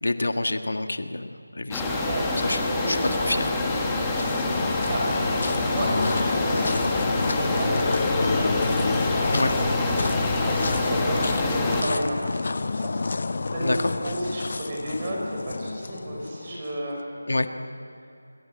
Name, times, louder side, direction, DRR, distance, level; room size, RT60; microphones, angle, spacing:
voice 1, 0.0-1.8 2.4-2.6 2.9-3.5 9.3-9.5 13.6-13.8 17.3-17.5, left 2 dB, 70° left, 7 dB, 1.5 m, -27 dB
sound 1, 1.7-11.8, left 2 dB, 5° left, 1.3 m, -26 dB
voice 2, 2.0-3.0 4.9-5.0 5.5-9.7 10.3-17.4, right 1 dB, 20° right, -2 dB, 5.1 m, -33 dB
sound 2, 3.5-16.8, left 3 dB, 35° left, 0.6 m, -29 dB
27.0 x 19.5 x 9.0 m, 2.6 s
figure-of-eight pair, 180°, 0 cm